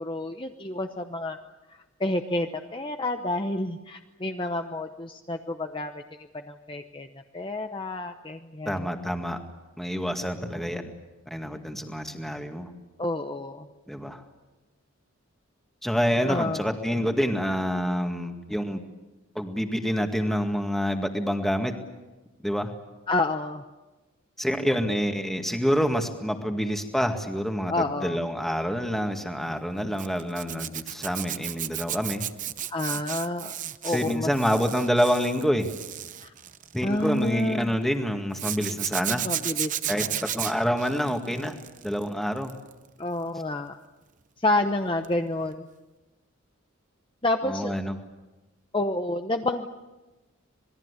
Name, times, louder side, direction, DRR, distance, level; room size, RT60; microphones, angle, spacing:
voice 1, 0.0-1.4 1.7-7.1 7.3-8.9 13.0-13.7 16.3-16.6 23.1-23.6 27.7-28.2 32.7-33.5 33.8-34.3 36.2-36.3 36.8-37.7 39.2-40.2 43.0-43.8 44.4-45.7 47.2-48.0 48.7-49.7, left 2 dB, 25° left, 6 dB, 0.9 m, -29 dB
voice 2, 8.7-9.4 9.8-10.9 11.3-12.7 13.9-14.2 15.8-18.8 19.4-21.7 22.4-22.7 24.4-32.2 33.9-35.7 36.7-39.3 39.9-41.6 41.8-42.5 47.4-48.0, equal, ahead, 4 dB, 2.0 m, -27 dB
Zipper (clothing), 30.0-37.4 38.3-42.0 42.4-42.7 45.0-45.2 45.5-45.6, right 11 dB, 35° right, 0.8 m, -33 dB
27.0 x 21.0 x 8.3 m, 1.1 s
head